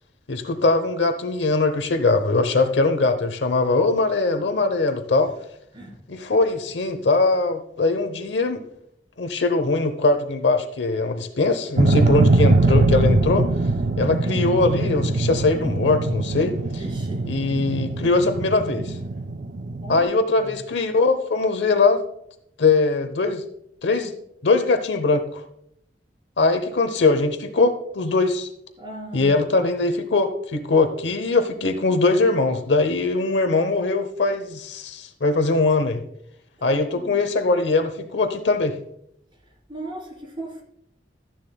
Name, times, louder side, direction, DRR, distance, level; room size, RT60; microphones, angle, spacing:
voice 1, 0.3-5.3 6.1-8.6 9.2-13.5 14.0-16.5 17.3-19.0 19.9-22.0 22.6-23.4 23.8-24.1 24.4-25.4 26.4-28.5 29.1-36.0 36.6-38.7, left 3 dB, 80° left, 0.9 m, -21 dB
sound 1, 11.8-20.0, right 2 dB, 50° right, 0.5 m, -22 dB
voice 2, 16.8-17.3 19.8-20.1 20.4-20.5 28.8-29.7 36.6-37.5 39.7-40.6, right 1 dB, 30° right, 3.5 m, -37 dB
13.5 x 10.5 x 2.3 m
head